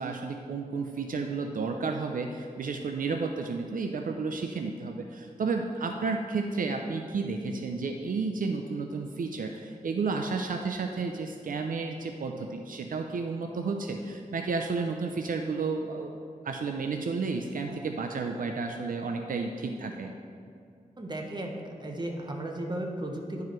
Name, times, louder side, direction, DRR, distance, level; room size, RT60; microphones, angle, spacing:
voice 1, 0.0-16.1 16.4-20.1, right 4 dB, 75° right, 3 dB, 0.4 m, -32 dB
voice 2, 21.0-23.4, right 1 dB, 30° right, 1 dB, 0.9 m, -35 dB
10.5 x 4.7 x 3.1 m, 2.4 s
wide cardioid pair, 90°, 14 cm